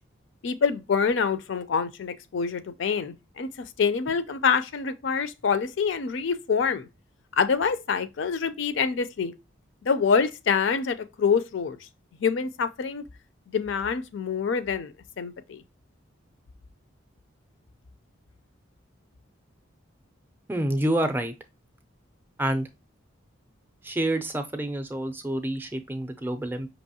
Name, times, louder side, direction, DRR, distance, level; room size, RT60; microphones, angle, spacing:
voice 1, 0.4-6.9 7.3-9.3 9.8-11.8 12.2-13.0 13.5-15.6, left 6 dB, 65° left, 0.4 m, -26 dB
voice 2, 20.5-21.3 22.4-22.7 23.8-26.7, right 1 dB, 10° right, 0.4 m, -28 dB
5.4 x 2.9 x 2.7 m
head